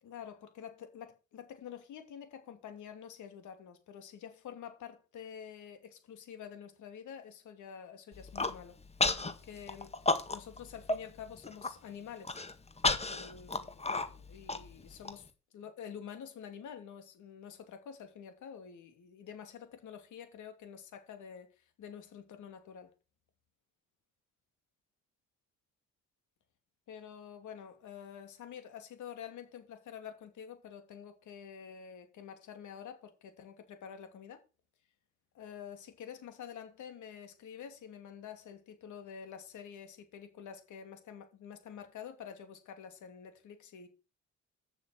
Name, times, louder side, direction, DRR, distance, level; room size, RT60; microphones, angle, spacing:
voice 1, 0.0-8.8 9.2-9.9 10.3-12.4 13.1-15.3 15.5-22.9 26.9-34.4 35.3-43.9, left 8 dB, 75° left, 3.0 m, -48 dB
Human voice, 8.1-8.6 9.0-9.3 9.7-10.6 10.9-11.0 11.4-11.7 12.2-15.1, left 3 dB, 20° left, 1.8 m, -31 dB
8.7 x 7.1 x 7.9 m
cardioid pair, 90°, 30 cm